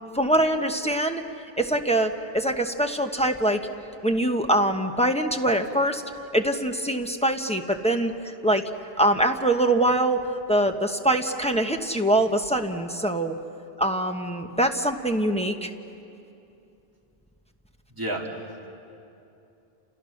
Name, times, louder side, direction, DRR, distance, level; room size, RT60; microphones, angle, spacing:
voice 1, 0.1-1.2 1.6-3.6 4.0-6.0 6.3-8.6 9.0-10.2 10.5-13.4 13.8-15.7, right 1 dB, 5° left, 4 dB, 1.1 m, -23 dB
voice 2, 17.9-18.7, right 1 dB, 20° right, -1 dB, 2.3 m, -32 dB
29.5 x 29.0 x 6.5 m, 2.7 s
omnidirectional pair, 1.0 m